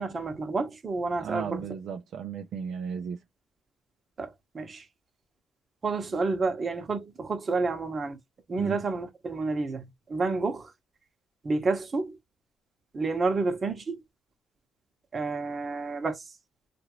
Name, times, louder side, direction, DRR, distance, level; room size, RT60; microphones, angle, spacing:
voice 1, 0.0-1.7 4.2-4.9 5.8-8.2 8.5-10.7 11.4-12.2 12.9-14.0 15.1-16.3, right 3 dB, 35° right, 1.0 m, -30 dB
voice 2, 1.2-3.2 8.6-8.8, right 7 dB, 70° right, 0.5 m, -35 dB
2.9 x 2.5 x 2.9 m
cardioid pair, 90°, 0 cm